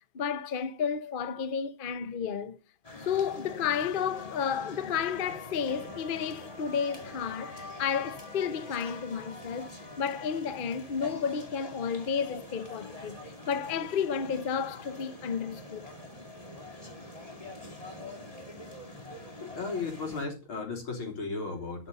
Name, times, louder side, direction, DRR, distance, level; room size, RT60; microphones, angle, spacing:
voice 1, 0.1-2.6 3.0-9.7 10.0-13.2 13.5-15.9, left 7 dB, 65° left, 0.5 m, -32 dB
sound 1, 2.8-20.3, left 1 dB, 15° left, 2.2 m, -45 dB
sound 2, 5.2-11.6, left 3 dB, 15° right, 7.0 m, -50 dB
voice 2, 19.4-21.9, left 4 dB, 80° left, 4.1 m, -35 dB
12.0 x 6.6 x 5.3 m
omnidirectional pair, 2.3 m